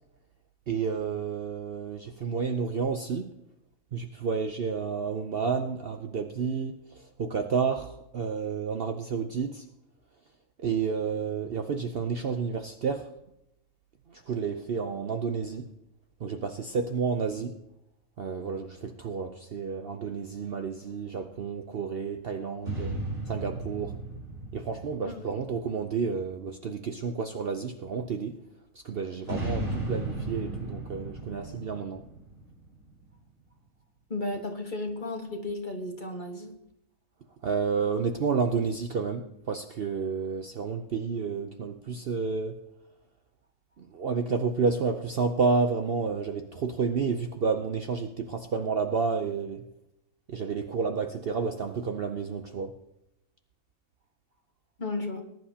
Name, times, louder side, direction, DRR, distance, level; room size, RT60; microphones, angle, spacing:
voice 1, 0.7-3.3 3.9-9.6 10.6-13.1 14.1-15.7 16.2-17.6 18.2-24.0 24.5-28.4 28.8-32.0 37.4-42.6 43.8-49.6 50.3-52.7, right 5 dB, 55° right, 6 dB, 0.8 m, -30 dB
sound 1, 22.6-26.3 29.2-33.0, right 2 dB, 80° right, 5.4 m, -36 dB
voice 2, 34.1-36.5 54.8-55.2, left 2 dB, 35° left, 3 dB, 1.5 m, -34 dB
20.0 x 10.5 x 2.8 m, 0.82 s
omnidirectional pair, 1.5 m